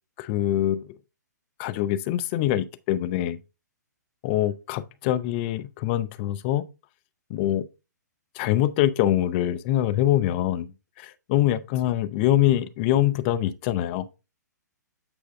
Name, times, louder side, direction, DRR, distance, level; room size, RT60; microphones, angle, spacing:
voice 1, 0.2-0.8 1.6-3.4 4.2-6.6 7.3-7.6 8.4-10.7 11.0-14.0, left 13 dB, 35° left, 0.7 m, -24 dB
9.0 x 4.8 x 3.3 m
figure-of-eight pair, 120°, 10 cm